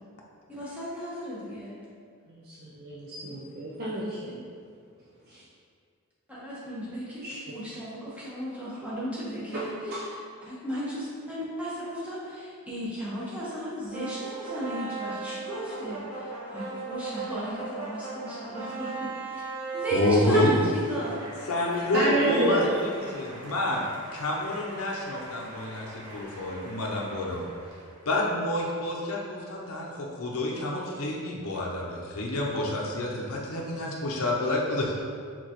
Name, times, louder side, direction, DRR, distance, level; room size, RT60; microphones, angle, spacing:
voice 1, 0.5-1.8 6.3-10.1 10.4-19.1 19.7-21.3 22.6-22.7, right 1 dB, 5° right, -9 dB, 1.1 m, -35 dB
voice 2, 2.3-4.4 5.3-5.4 7.2-7.3 9.5-10.0 21.9-22.6, right 1 dB, 45° right, -7 dB, 0.6 m, -29 dB
sound 1, 13.9-28.1, right 4 dB, 85° right, 1.2 m, -39 dB
voice 3, 19.9-20.5 21.5-23.8 24.1-27.5 28.1-34.9, left 1 dB, 70° left, -3 dB, 0.6 m, -28 dB
4.7 x 3.8 x 2.9 m, 2.2 s
head